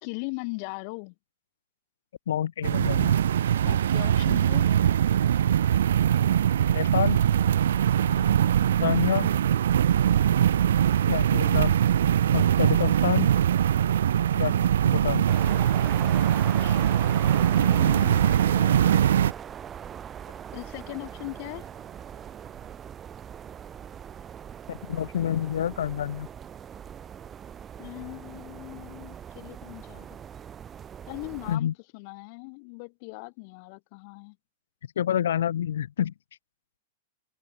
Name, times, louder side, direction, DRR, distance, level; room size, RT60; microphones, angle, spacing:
voice 1, 0.0-1.1 3.6-4.7 8.1-8.5 11.4-11.6 14.4-14.7 17.6-18.8 20.5-21.7 27.8-30.2 31.1-34.4, left 34 dB, 50° left, 2.8 m, -39 dB
voice 2, 2.3-3.2 6.7-7.2 8.8-9.3 11.1-11.8 12.3-13.3 14.4-15.2 16.6-16.8 24.7-26.3 31.5-31.7 35.0-36.1, left 10 dB, 80° left, 0.7 m, -28 dB
sound 1, 2.6-19.3, right 10 dB, 80° right, 0.3 m, -22 dB
sound 2, 3.8-22.7, right 23 dB, 40° right, 4.1 m, -54 dB
sound 3, 15.3-31.6, right 8 dB, 20° right, 0.5 m, -41 dB
open air
hypercardioid pair, 130°, 0 cm